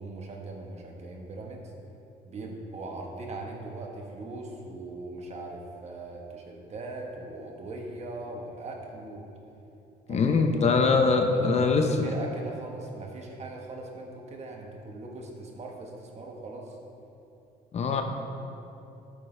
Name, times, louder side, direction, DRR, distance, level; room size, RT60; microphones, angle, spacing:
voice 1, 0.0-1.7 2.2-9.3 10.1-16.8, right 2 dB, 40° right, 1 dB, 1.5 m, -40 dB
voice 2, 10.1-11.9 17.7-18.0, left 4 dB, 40° left, 5 dB, 0.7 m, -22 dB
11.5 x 8.6 x 3.4 m, 2.8 s
cardioid pair, 110°, 17 cm